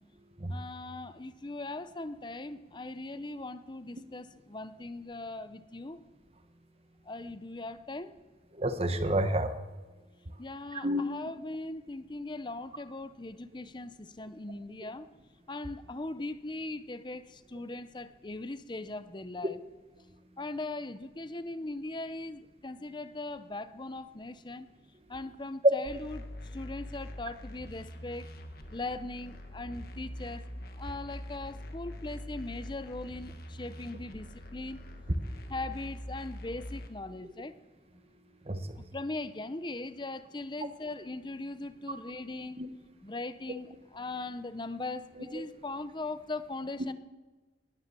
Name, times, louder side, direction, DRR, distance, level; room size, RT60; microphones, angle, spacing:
voice 1, 0.5-6.0 7.1-8.1 10.4-15.1 15.5-19.6 20.4-24.7 25.1-26.3 26.5-28.3 28.7-30.5 30.8-34.8 35.5-37.5 38.9-42.6 43.0-46.9, left 2 dB, 25° left, 13 dB, 0.7 m, -39 dB
voice 2, 8.6-9.5 10.7-11.0 38.5-38.8 42.6-42.7 45.2-45.5, right 1 dB, 35° right, 9 dB, 1.1 m, -30 dB
sound 1, 25.8-36.9, left 1 dB, 55° left, 1.5 m, -44 dB
19.0 x 10.0 x 6.8 m, 1.3 s
head